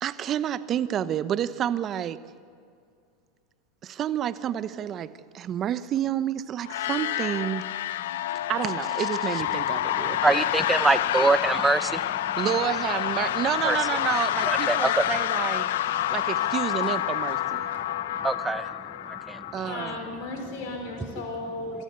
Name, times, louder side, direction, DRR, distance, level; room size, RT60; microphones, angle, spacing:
voice 1, 0.0-2.2 3.8-7.7 8.5-10.4 12.4-15.7 16.1-17.7 19.5-20.1, right 10 dB, 40° right, 14 dB, 1.0 m, -29 dB
sound 1, 6.6-20.3, left 13 dB, 75° left, 0.7 m, -28 dB
voice 2, 10.2-12.4 13.6-13.8 14.5-15.1 18.2-18.7 19.1-19.4, right 3 dB, 10° right, 14 dB, 0.9 m, -24 dB
sound 2, 14.0-17.8, right 3 dB, 75° right, 5.8 m, -49 dB
voice 3, 19.5-21.8, left 2 dB, 60° left, 3 dB, 3.9 m, -35 dB
26.0 x 14.0 x 8.2 m, 2.3 s
hypercardioid pair, 100°, 0 cm